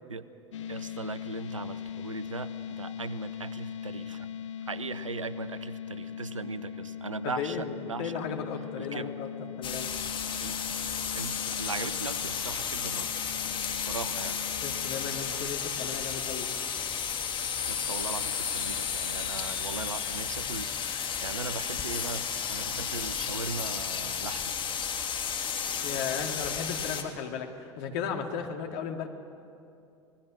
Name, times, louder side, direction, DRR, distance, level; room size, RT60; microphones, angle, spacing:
sound 1, 0.5-16.0, left 8 dB, 75° left, 0.9 m, -41 dB
voice 1, 0.7-4.3 4.7-8.3 8.8-9.1 9.7-9.8 10.4-10.5 11.1-13.1 13.7-14.4 17.7-24.6, right 4 dB, 90° right, 14 dB, 0.8 m, -39 dB
voice 2, 7.2-7.7 8.0-9.3 9.6-9.9 14.6-16.5 25.8-29.1, left 7 dB, 55° left, 4 dB, 2.2 m, -35 dB
sound 2, 9.6-27.0, left 7 dB, 30° left, 2.0 m, -33 dB
26.5 x 19.5 x 6.3 m, 2.6 s
figure-of-eight pair, 80°, 16 cm